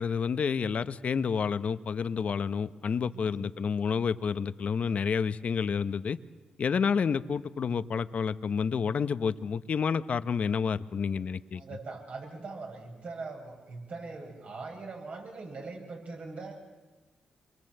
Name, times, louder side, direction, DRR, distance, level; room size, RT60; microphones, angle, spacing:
voice 1, 0.0-6.2 6.6-11.6, left 6 dB, 60° left, 13 dB, 0.9 m, -29 dB
voice 2, 3.1-3.5 11.5-16.6, right 3 dB, 60° right, 1 dB, 7.1 m, -41 dB
27.0 x 23.0 x 7.9 m, 1.2 s
supercardioid pair, 55°, 3 cm